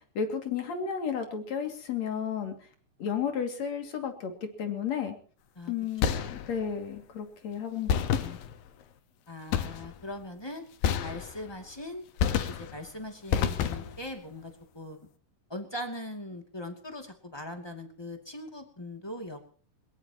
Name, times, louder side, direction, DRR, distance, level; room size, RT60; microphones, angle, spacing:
voice 1, 0.0-2.6 3.0-5.2 5.7-8.4, left 7 dB, 50° left, 5 dB, 3.5 m, -33 dB
sound 1, 6.0-6.7 7.9-8.8 9.5-10.1 10.8-11.6 12.2-12.9 13.3-14.1, left 8 dB, 85° left, 3.0 m, -29 dB
voice 2, 9.3-10.6 11.0-12.0 12.5-15.0 15.5-19.5, left 1 dB, 10° left, 4 dB, 1.9 m, -40 dB
22.0 x 21.0 x 3.0 m, 0.42 s
omnidirectional pair, 4.0 m